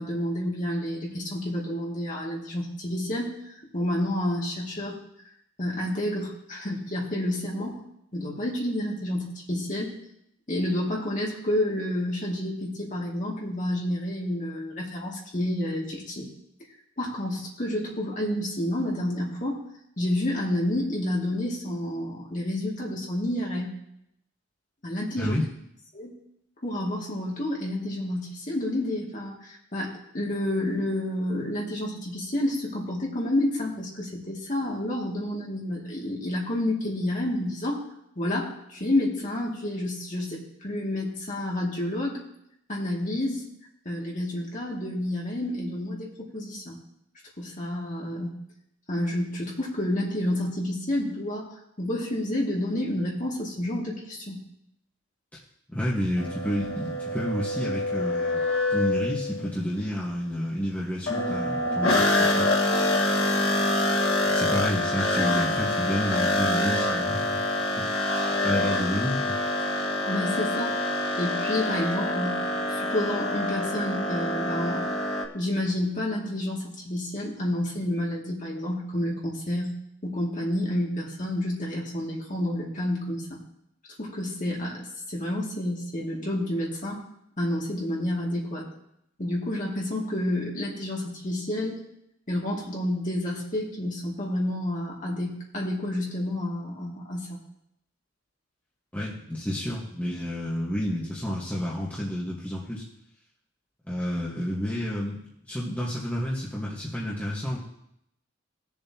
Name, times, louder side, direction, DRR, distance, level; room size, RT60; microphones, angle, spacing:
voice 1, 0.0-4.9 5.6-7.8 8.1-10.0 10.5-16.3 17.0-19.6 20.0-23.7 24.8-25.4 25.9-26.1 26.6-37.8 38.2-42.2 42.7-43.4 43.8-46.8 47.4-48.3 48.9-51.5 51.8-54.4 70.1-70.8 71.2-72.4 72.7-74.9 75.3-79.7 80.0-83.4 84.0-87.0 87.4-88.7 89.2-91.8 92.3-97.4, left 1 dB, 40° left, -3 dB, 2.4 m, -29 dB
voice 2, 25.2-25.5 55.7-58.4 58.7-62.5 64.2-67.4 67.8-67.9 68.4-69.3 98.9-102.8 103.9-105.2 105.5-107.6, equal, 5° left, -6 dB, 1.4 m, -30 dB
sound 1, 56.2-59.5 61.1-75.2, left 1 dB, 80° left, 1.6 m, -26 dB
19.0 x 7.1 x 2.9 m, 0.77 s
head